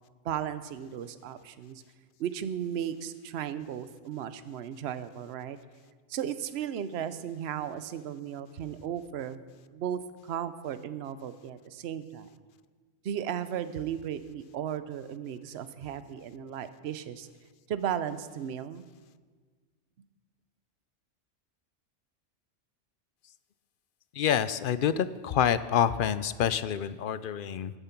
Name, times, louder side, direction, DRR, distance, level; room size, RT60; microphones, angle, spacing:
voice 1, 0.2-1.8 2.2-5.6 6.1-9.4 9.7-12.3 13.0-17.3 17.7-18.8, right 9 dB, 60° right, 12 dB, 0.9 m, -35 dB
voice 2, 24.2-27.7, left 9 dB, 60° left, 14 dB, 0.6 m, -27 dB
16.0 x 10.5 x 5.9 m, 1.5 s
omnidirectional pair, 1.3 m